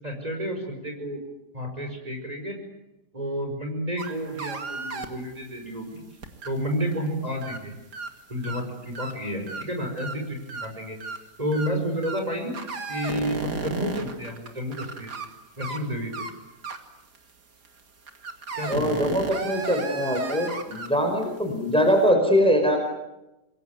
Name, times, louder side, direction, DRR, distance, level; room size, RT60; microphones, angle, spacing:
voice 1, 0.0-1.2 1.5-2.6 3.1-6.0 6.4-7.7 8.3-11.0 11.4-15.1 15.6-16.2 18.5-19.1, equal, 20° right, 2 dB, 5.7 m, -30 dB
sound 1, 4.0-5.1 6.2-7.1 7.4-7.6 7.9-8.1 8.4-8.6 9.0-9.1 9.5-9.6 10.0-10.2 10.5-10.7 11.0-11.2 11.5-11.7 12.0-12.2 12.5-15.3 15.6-15.8 16.1-16.3 16.6-16.8 17.2-17.3 17.7-17.8 18.1-21.0 21.2-21.4 21.7-21.9, right 3 dB, 75° right, 3.0 m, -34 dB
voice 2, 18.7-22.8, equal, 5° left, 4 dB, 5.1 m, -22 dB
27.0 x 22.5 x 9.6 m, 0.94 s
omnidirectional pair, 1.8 m